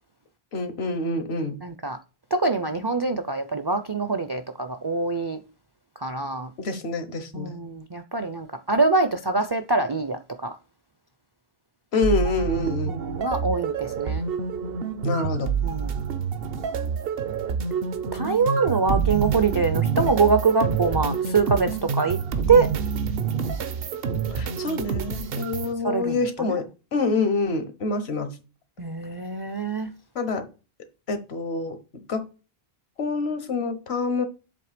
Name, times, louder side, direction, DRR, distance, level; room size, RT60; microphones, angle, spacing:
voice 1, 0.5-1.6 6.6-7.7 11.9-13.0 15.0-15.5 24.3-26.7 26.9-28.4 30.1-30.5 31.1-31.8 32.1-32.3 33.0-34.2, left 3 dB, 80° left, 1.4 m, -26 dB
voice 2, 1.6-2.0 2.3-5.4 6.0-6.5 7.3-10.6 12.9-14.2 15.6-16.0 18.1-22.2 22.5-22.7 25.8-26.6 28.8-29.9, right 4 dB, 35° right, 0.4 m, -24 dB
sound 1, 12.0-25.7, right 6 dB, 65° right, 0.9 m, -27 dB
7.6 x 3.2 x 5.1 m
omnidirectional pair, 1.1 m